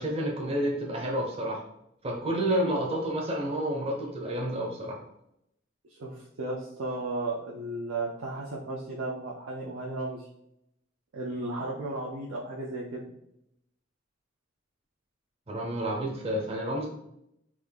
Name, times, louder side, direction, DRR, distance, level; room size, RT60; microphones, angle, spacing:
voice 1, 0.0-1.6 2.0-5.0 15.5-16.9, right 1 dB, 30° right, -1 dB, 0.5 m, -30 dB
voice 2, 5.9-10.3 11.1-13.1, right 2 dB, 85° right, -4 dB, 0.5 m, -34 dB
3.5 x 2.4 x 3.3 m, 0.79 s
head